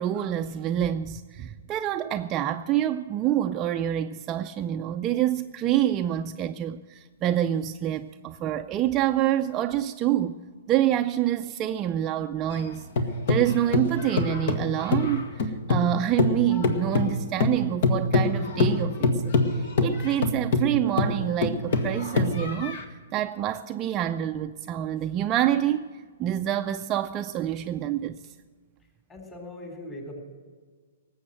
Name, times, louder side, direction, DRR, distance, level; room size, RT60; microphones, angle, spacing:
voice 1, 0.0-10.4 10.7-12.9 13.3-22.8 23.1-25.8 26.2-28.2, right 11 dB, 25° right, 0.5 m, -27 dB
sound 1, 12.5-15.9 16.2-22.8, left 3 dB, 55° left, 1.5 m, -25 dB
voice 2, 29.1-30.2, left 1 dB, 20° left, 3.8 m, -40 dB
19.0 x 7.9 x 7.7 m
figure-of-eight pair, 120°, 0 cm